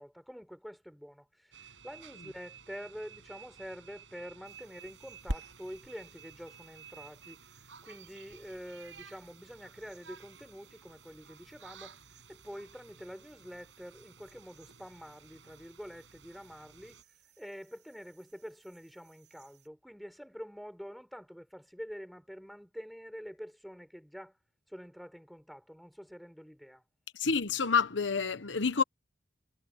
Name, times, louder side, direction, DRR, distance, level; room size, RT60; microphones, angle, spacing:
voice 1, 0.0-7.4 7.8-12.0 12.3-17.0 17.4-24.4 24.7-26.8, equal, ahead, 4.0 m, -47 dB
sound 1, 1.5-17.0, right 6 dB, 80° right, 7.9 m, -54 dB
sound 2, 4.4-19.7, right 1 dB, 60° right, 3.5 m, -50 dB
voice 2, 27.1-28.8, left 5 dB, 75° left, 1.1 m, -28 dB
head